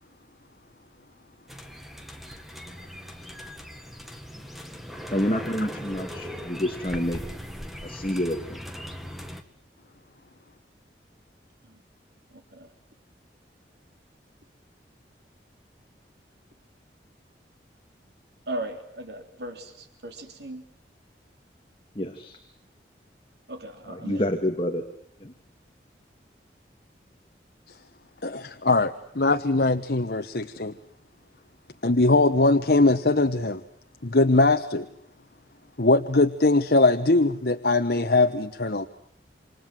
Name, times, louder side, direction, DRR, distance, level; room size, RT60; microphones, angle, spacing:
sound 1, 1.5-9.4, equal, ahead, 2.0 m, -39 dB
voice 1, 5.1-7.2 7.8-8.6 21.9-22.4 23.9-24.8 25.2-25.3, left 1 dB, 30° left, 4 dB, 2.5 m, -28 dB
voice 2, 12.3-12.7 18.5-20.6 23.5-24.3, right 1 dB, 75° right, 6 dB, 3.4 m, -37 dB
voice 3, 28.2-30.7 31.8-33.6 34.0-34.9 35.8-38.8, left 2 dB, 65° left, 8 dB, 1.2 m, -21 dB
28.0 x 27.0 x 7.7 m, 0.73 s
head